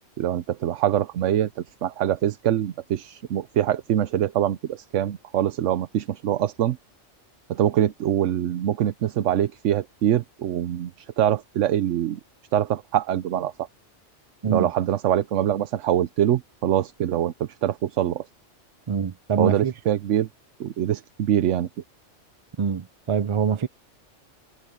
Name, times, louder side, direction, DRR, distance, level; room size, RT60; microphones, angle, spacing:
voice 1, 0.2-6.8 7.5-12.2 12.5-13.7 14.5-18.2 19.4-20.3 20.6-21.7, right 11 dB, 80° right, 1.0 m, -24 dB
voice 2, 18.9-19.7 22.6-23.7, right 6 dB, 40° right, 0.4 m, -24 dB
omnidirectional pair, 1.2 m